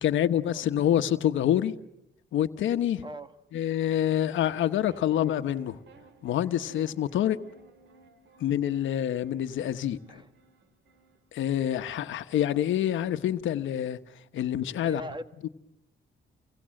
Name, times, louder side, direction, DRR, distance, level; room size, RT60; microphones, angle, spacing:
voice 1, 0.0-1.8 2.3-3.0 3.5-5.8 6.2-7.4 8.4-10.2 11.3-14.0 14.3-15.0 15.4-15.5, left 11 dB, 75° left, 1.2 m, -27 dB
voice 2, 3.0-3.3 10.1-10.3 14.8-15.5, right 1 dB, 25° right, 1.8 m, -40 dB
sound 1, 4.3-14.5, right 4 dB, 65° right, 2.8 m, -58 dB
29.5 x 24.0 x 7.8 m
cardioid pair, 90°, 20 cm